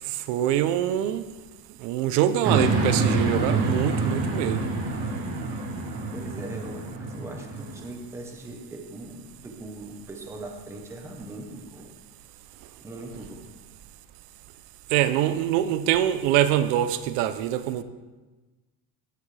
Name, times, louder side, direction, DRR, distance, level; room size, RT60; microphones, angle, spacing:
voice 1, 0.3-1.2 1.8-4.7 14.9-17.8, right 11 dB, 70° right, 0.7 m, -24 dB
sound 1, 2.4-7.9, right 3 dB, 45° right, 1.6 m, -27 dB
voice 2, 6.1-11.9 12.8-13.5, right 2 dB, 5° right, 0.8 m, -40 dB
15.5 x 7.0 x 3.3 m
cardioid pair, 170°, 48 cm